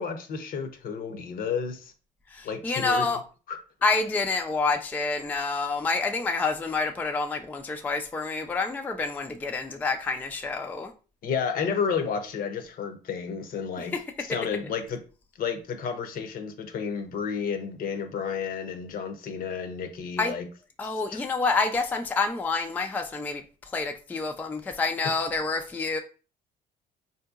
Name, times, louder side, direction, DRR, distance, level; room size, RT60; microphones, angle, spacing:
voice 1, 0.0-1.9 2.4-3.1 3.5-3.6 11.2-13.9 14.3-15.0 15.4-20.5 20.8-21.2 25.0-25.1, left 6 dB, 55° left, 0.6 m, -31 dB
voice 2, 2.3-3.2 3.8-10.9 13.8-13.9 20.2-20.3 20.8-23.4 23.7-26.0, left 3 dB, 10° left, 0.3 m, -28 dB
3.6 x 2.7 x 2.3 m
cardioid pair, 110°, 17 cm